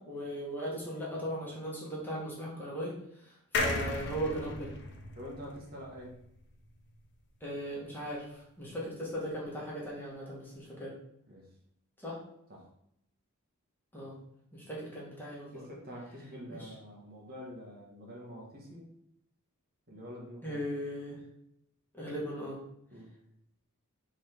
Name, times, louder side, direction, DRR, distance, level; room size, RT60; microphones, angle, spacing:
voice 1, 0.0-4.7 7.4-11.0 12.0-12.2 13.9-14.2 14.5-15.6 16.5-16.7 20.4-21.2 21.9-22.6, equal, 10° left, -5 dB, 1.8 m, -38 dB
sound 1, 3.5-7.0 7.4-7.5 7.7-7.8, left 2 dB, 55° left, 1.0 m, -36 dB
voice 2, 5.1-6.1 11.3-11.5 12.5-12.7 15.5-18.9 19.9-20.6 22.9-23.1, equal, 45° right, -3 dB, 1.8 m, -46 dB
6.1 x 3.8 x 4.6 m, 0.76 s
head